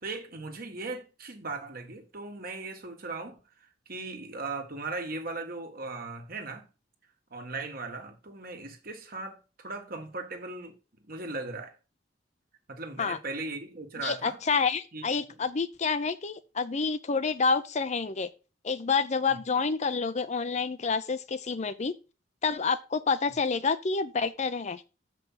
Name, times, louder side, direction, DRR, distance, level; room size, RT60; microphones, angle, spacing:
voice 1, 0.0-6.7 7.3-11.8 12.7-14.4 14.9-15.0, right 3 dB, 55° right, 1.7 m, -38 dB
voice 2, 14.0-18.3 18.6-21.9 22.4-24.8, left 5 dB, 40° left, 0.6 m, -28 dB
7.2 x 5.5 x 5.6 m
head